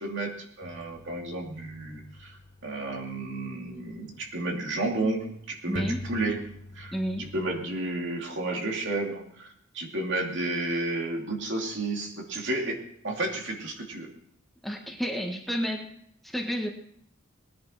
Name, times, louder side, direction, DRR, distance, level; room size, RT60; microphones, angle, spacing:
voice 1, 0.0-2.4 2.6-6.5 6.7-14.1, right 2 dB, 65° right, 1 dB, 2.7 m, -32 dB
sound 1, 0.6-4.5 5.2-5.3 5.7-7.6, left 1 dB, 40° left, 1.1 m, -44 dB
voice 2, 5.7-6.0 6.9-7.3 14.6-15.9 16.2-16.7, equal, ahead, 1 dB, 1.5 m, -30 dB
20.0 x 10.5 x 4.3 m, 0.67 s
head